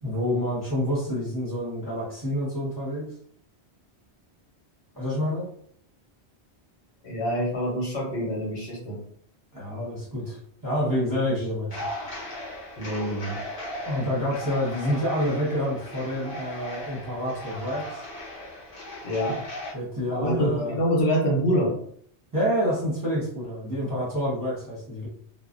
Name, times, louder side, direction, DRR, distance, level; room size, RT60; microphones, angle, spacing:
voice 1, 0.0-3.1 4.9-5.5 9.5-10.4 10.6-11.7 13.8-18.0 19.7-20.7 22.3-25.1, equal, 20° right, -9 dB, 0.8 m, -28 dB
voice 2, 7.0-9.0 12.8-13.4 19.0-19.4 20.1-21.7, equal, 75° left, -2 dB, 1.1 m, -25 dB
sound 1, 11.7-19.7, left 1 dB, 50° left, 0.9 m, -37 dB
2.5 x 2.0 x 2.4 m, 0.63 s
omnidirectional pair, 1.1 m